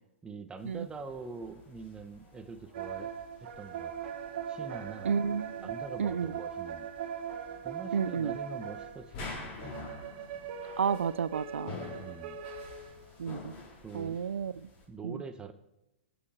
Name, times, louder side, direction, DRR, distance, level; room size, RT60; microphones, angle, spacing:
voice 1, 0.2-3.1 3.6-3.9 4.5-5.1 5.6-6.9 7.6-9.6 12.0-12.4 13.8-14.2 14.9-15.5, right 4 dB, 15° right, 8 dB, 0.9 m, -44 dB
sound 1, 0.6-14.9, left 3 dB, 45° left, 3.9 m, -49 dB
sound 2, 2.7-9.1 9.6-13.1, right 8 dB, 55° right, 1.5 m, -40 dB
voice 2, 5.0-5.7 6.0-6.4 7.9-8.3 10.8-11.8 13.2-13.6 13.9-14.5 15.0-15.2, right 6 dB, 90° right, 16 dB, 0.4 m, -31 dB
18.5 x 6.9 x 4.4 m, 0.91 s
hypercardioid pair, 125°, 7 cm